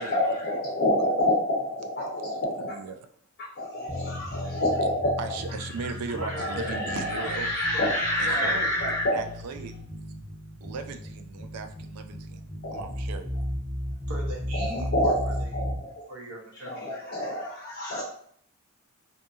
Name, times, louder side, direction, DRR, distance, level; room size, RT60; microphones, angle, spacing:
voice 1, 0.0-2.7 3.4-5.4 6.3-9.2 12.6-12.8 14.5-16.0 16.6-18.0, left 1 dB, 50° left, -4 dB, 0.6 m, -28 dB
voice 2, 2.6-3.0 5.2-7.5 8.2-8.6 9.1-9.7 10.6-12.4 12.7-13.3 14.8-14.9, right 4 dB, 85° right, 7 dB, 0.4 m, -37 dB
sound 1, 3.9-15.8, left 1 dB, ahead, 0.7 m, -35 dB
voice 3, 6.1-6.7 7.2-7.4 7.7-8.0 8.2-8.7 14.1-15.5 16.1-16.9, right 1 dB, 70° right, -1 dB, 0.8 m, -38 dB
2.7 x 2.6 x 2.3 m, 0.62 s
head